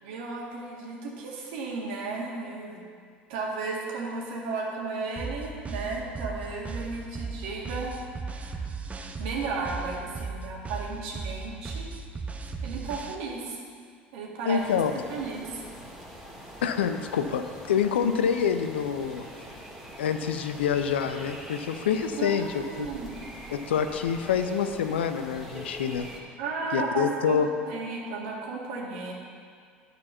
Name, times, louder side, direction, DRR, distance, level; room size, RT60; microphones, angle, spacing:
voice 1, 0.0-2.9 3.3-8.7 9.2-11.9 12.6-13.6 14.1-14.6 15.1-15.6 17.8-17.9 22.2-23.1 26.4-29.1, right 4 dB, 65° right, -2 dB, 1.8 m, -34 dB
sound 1, 5.2-13.2, right 4 dB, 25° right, 0.8 m, -36 dB
voice 2, 14.5-14.9 16.6-19.3 20.0-22.9 23.5-26.1 26.7-27.5, left 7 dB, 80° left, 8 dB, 0.5 m, -27 dB
sound 2, 14.6-26.2, equal, 5° right, 2.0 m, -44 dB
9.6 x 4.5 x 6.9 m, 2.1 s
hypercardioid pair, 70°, 6 cm